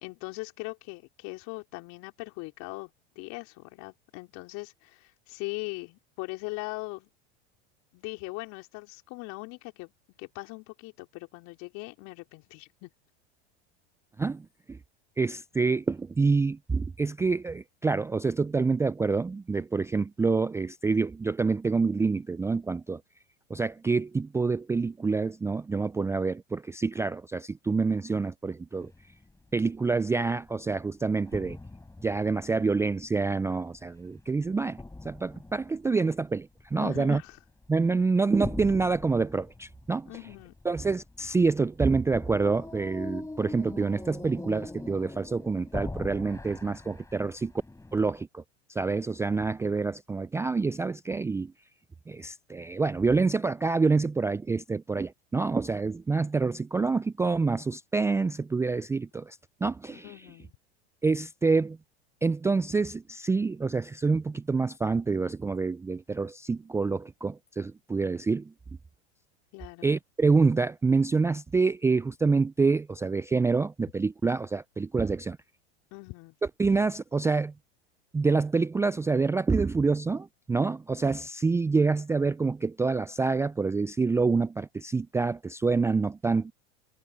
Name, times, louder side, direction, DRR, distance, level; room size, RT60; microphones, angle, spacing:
voice 1, 0.0-2.9 3.1-7.1 7.9-9.9 10.2-12.9 36.8-37.4 40.1-40.6 59.9-60.6 69.5-69.9 75.9-76.3, left 24 dB, 55° left, 4.1 m, -40 dB
voice 2, 14.2-14.8 15.2-23.0 23.5-28.9 29.5-31.6 32.0-37.2 37.7-40.1 40.6-47.5 47.9-48.4 48.7-51.5 52.1-60.1 61.0-61.8 62.2-68.5 69.8-75.4 76.6-77.5 78.1-86.5, right 4 dB, 10° right, 0.4 m, -27 dB
sound 1, 28.8-29.2 29.6-30.8 31.3-33.5 34.1-36.2 36.6-37.3 37.6-38.0 38.4-48.2, left 2 dB, 10° left, 7.6 m, -42 dB
hypercardioid pair, 95°, 33 cm